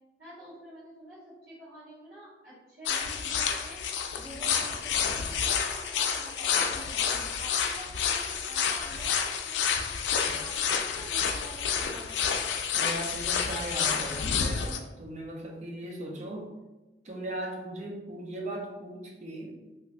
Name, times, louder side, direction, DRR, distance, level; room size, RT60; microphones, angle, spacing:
voice 1, 0.2-3.8 4.1-9.9 10.3-12.4, right 1 dB, 60° right, -14 dB, 1.4 m, -48 dB
sound 1, 2.9-14.8, left 7 dB, 90° left, 0.3 m, -29 dB
voice 2, 12.7-16.5 17.0-19.6, right 1 dB, 40° right, 0 dB, 0.6 m, -38 dB
3.2 x 2.9 x 2.4 m, 1.1 s
head